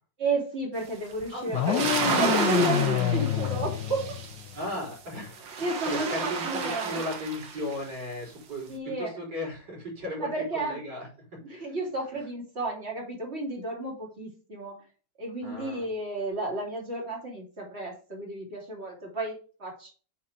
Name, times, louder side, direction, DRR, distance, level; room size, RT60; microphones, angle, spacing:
voice 1, 0.2-1.9 2.1-4.2 5.6-7.0 8.7-9.1 10.2-10.8 11.4-14.8 15.2-19.9, right 2 dB, 35° right, -1 dB, 3.3 m, -32 dB
sound 1, 1.1-1.2 1.6-4.6 5.2-7.8, right 5 dB, 75° right, 2.1 m, -31 dB
voice 2, 1.3-2.0 4.5-10.3 10.5-11.7 15.4-15.9, left 1 dB, 60° right, -4 dB, 5.0 m, -36 dB
sound 2, 1.5-4.7, left 11 dB, 70° left, 1.1 m, -28 dB
8.7 x 4.8 x 5.2 m, 0.37 s
omnidirectional pair, 2.1 m